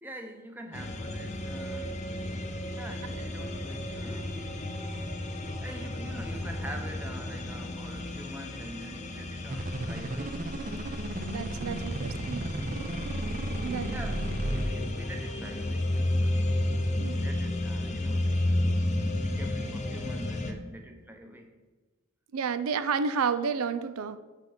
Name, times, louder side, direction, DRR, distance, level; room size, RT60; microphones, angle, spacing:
voice 1, 0.0-2.0 2.7-4.4 5.6-10.5 11.6-12.0 13.9-16.4 17.1-18.6 19.2-21.6, right 1 dB, 10° right, 4 dB, 0.8 m, -45 dB
sound 1, 0.7-20.5, left 1 dB, 30° left, 0.6 m, -32 dB
sound 2, 6.2-18.1, equal, 15° left, 1.0 m, -51 dB
sound 3, 9.5-14.7, right 1 dB, 40° right, 0.6 m, -34 dB
voice 2, 11.2-12.5 13.6-13.9 17.0-17.2 22.3-24.2, right 5 dB, 85° right, 12 dB, 0.4 m, -31 dB
7.4 x 5.8 x 5.1 m, 1.2 s
head